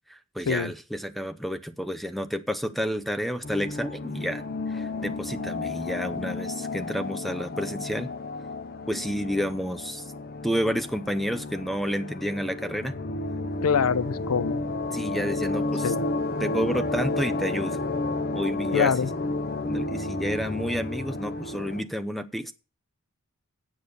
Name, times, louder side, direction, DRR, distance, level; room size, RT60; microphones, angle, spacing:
voice 1, 0.1-8.1 8.9-10.0 10.4-13.0 14.9-15.9 16.4-17.8 18.3-18.9 19.6-22.5, equal, ahead, 0.6 m, -30 dB
sound 1, 3.4-21.8, left 2 dB, 45° left, 0.6 m, -31 dB
voice 2, 13.6-14.6 15.8-16.1 18.7-19.1, left 6 dB, 90° left, 0.6 m, -24 dB
8.7 x 6.4 x 6.9 m
head